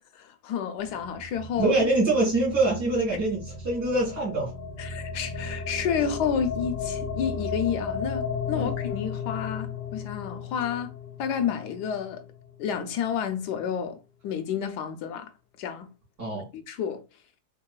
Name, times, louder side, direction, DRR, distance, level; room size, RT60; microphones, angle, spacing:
voice 1, 0.1-1.7 4.8-10.9 11.2-12.2 12.6-14.0 14.2-15.3 15.6-15.9 16.3-17.0, left 7 dB, 75° left, 1.1 m, -30 dB
sound 1, 0.8-13.1, left 5 dB, 40° left, 0.8 m, -35 dB
voice 2, 1.6-4.5 6.0-6.1 8.5-8.7 16.2-16.4, right 2 dB, 55° right, 2.9 m, -24 dB
4.7 x 2.9 x 2.2 m
omnidirectional pair, 1.9 m